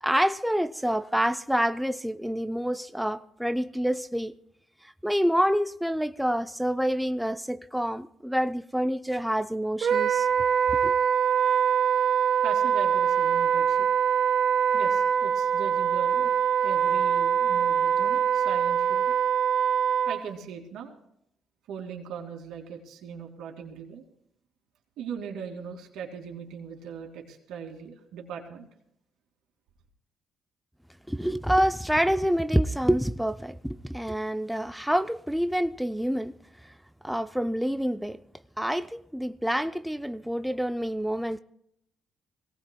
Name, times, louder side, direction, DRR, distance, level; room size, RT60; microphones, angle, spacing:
voice 1, 0.0-4.4 4.8-10.3 10.8-10.9 31.1-36.3 36.6-36.7 37.0-38.2 38.6-41.4, equal, ahead, 0.5 m, -27 dB
Wind instrument woodwind instrument, 9.8-20.2, right 8 dB, 60° right, 1.0 m, -23 dB
voice 2, 12.4-13.9 14.7-16.4 16.6-19.0 20.1-20.9 21.7-24.0 25.0-28.7, right 7 dB, 85° right, 2.4 m, -39 dB
23.0 x 17.5 x 2.2 m
cardioid pair, 90°, 0 cm